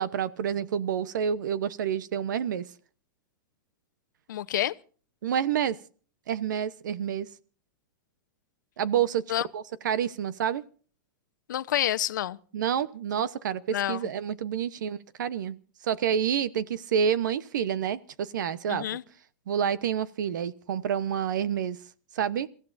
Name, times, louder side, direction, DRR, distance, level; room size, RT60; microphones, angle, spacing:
voice 1, 0.0-2.7 5.2-5.8 6.3-7.3 8.8-9.2 9.5-10.6 12.5-15.6 15.8-19.0 19.5-21.8 22.1-22.5, right 8 dB, 75° right, 1.0 m, -28 dB
voice 2, 4.3-4.7 9.3-9.5 11.5-12.4 13.7-14.0 18.7-19.0, left 12 dB, 75° left, 0.8 m, -28 dB
29.5 x 15.5 x 2.6 m
supercardioid pair, 180°, 10 cm